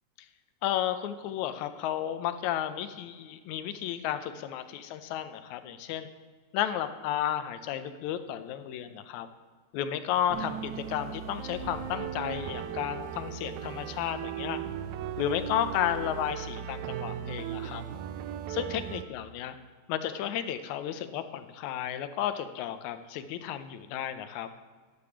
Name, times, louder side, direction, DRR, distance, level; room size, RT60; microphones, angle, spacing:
voice 1, 0.6-6.1 6.5-9.3 9.7-14.6 15.2-17.8 18.5-19.6 19.9-24.5, left 11 dB, 80° left, 10 dB, 2.0 m, -33 dB
sound 1, 10.3-19.1, right 9 dB, 85° right, 2.0 m, -37 dB
sound 2, 10.8-16.3, left 1 dB, 65° left, 2.5 m, -51 dB
11.0 x 4.9 x 7.0 m, 1.5 s
omnidirectional pair, 3.3 m